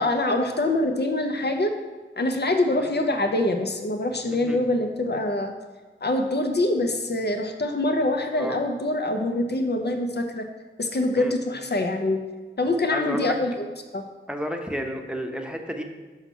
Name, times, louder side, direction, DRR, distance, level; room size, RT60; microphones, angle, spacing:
voice 1, 0.0-1.7 2.2-5.5 6.0-10.5 10.8-12.2 12.6-13.7 13.9-14.0, left 2 dB, 55° left, 5 dB, 0.7 m, -24 dB
voice 2, 12.9-13.3 14.3-15.8, equal, 5° right, 3 dB, 0.9 m, -31 dB
5.7 x 5.7 x 6.1 m, 1.3 s
wide cardioid pair, 45°, 20 cm